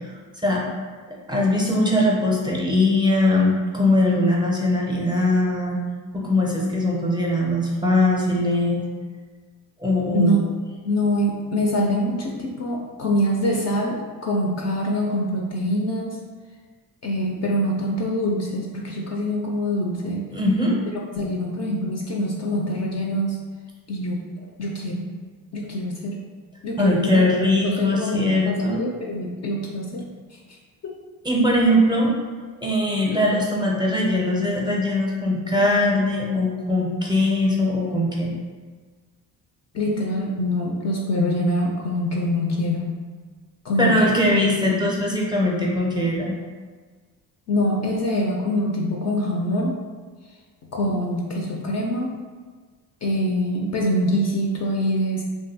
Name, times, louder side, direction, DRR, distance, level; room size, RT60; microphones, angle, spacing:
voice 1, 1.3-5.8 6.1-8.9 9.8-10.4 20.3-20.8 26.8-28.9 31.2-32.1 32.6-38.3 43.8-46.4 50.8-50.9, left 1 dB, 10° right, -3 dB, 0.6 m, -21 dB
voice 2, 10.8-16.2 17.0-20.2 21.1-23.4 23.9-24.2 24.6-25.1 25.5-26.2 26.6-27.2 27.6-30.0 30.3-30.4 30.8-30.9 39.7-43.0 43.6-44.4 44.7-44.9 47.5-49.8 50.7-52.1 53.0-55.2, equal, 40° left, -1 dB, 0.4 m, -24 dB
2.7 x 2.2 x 2.7 m, 1.5 s
supercardioid pair, 70°, 42 cm